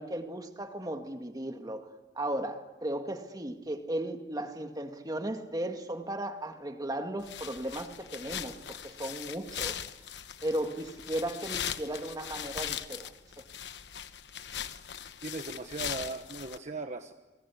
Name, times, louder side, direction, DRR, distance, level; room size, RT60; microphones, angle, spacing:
voice 1, 0.0-1.9 2.2-9.9 10.4-13.1 13.4-13.5, right 1 dB, 20° right, 5 dB, 2.0 m, -36 dB
sound 1, 7.2-16.6, left 9 dB, 80° left, 1.1 m, -40 dB
voice 2, 15.2-17.1, right 3 dB, 45° right, 6 dB, 1.2 m, -38 dB
30.0 x 22.0 x 8.4 m, 1.1 s
head